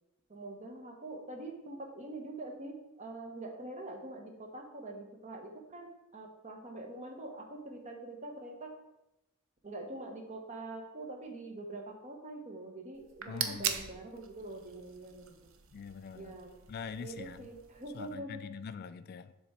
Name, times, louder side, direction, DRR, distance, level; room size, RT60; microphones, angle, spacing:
voice 1, 0.3-8.7 9.6-15.5 16.1-16.5 17.0-18.4, right 2 dB, 35° right, 3 dB, 0.9 m, -44 dB
sound 1, 12.9-18.1, right 8 dB, 65° right, 0.6 m, -41 dB
voice 2, 13.3-13.7 15.7-16.3 16.7-17.5 17.9-19.3, left 6 dB, 45° left, 13 dB, 0.3 m, -43 dB
6.9 x 3.5 x 4.2 m, 0.92 s
head